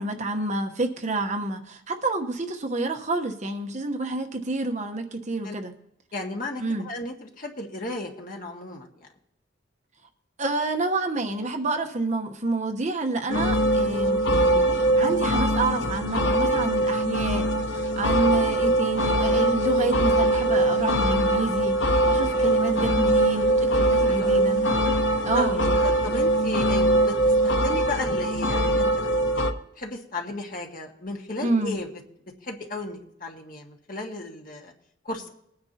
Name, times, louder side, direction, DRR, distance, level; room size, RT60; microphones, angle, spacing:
voice 1, 0.0-5.7 6.6-6.9 10.4-25.8 31.4-31.7, right 2 dB, 40° right, 5 dB, 1.1 m, -28 dB
voice 2, 6.1-9.1 22.2-22.5 24.1-24.4 25.3-25.5 25.8-27.2 27.4-31.9 32.4-34.7 35.1-35.3, left 2 dB, 45° left, 1 dB, 1.8 m, -34 dB
sound 1, 13.3-29.5, right 1 dB, 75° left, 1.0 m, -22 dB
20.5 x 9.7 x 2.9 m, 0.76 s
head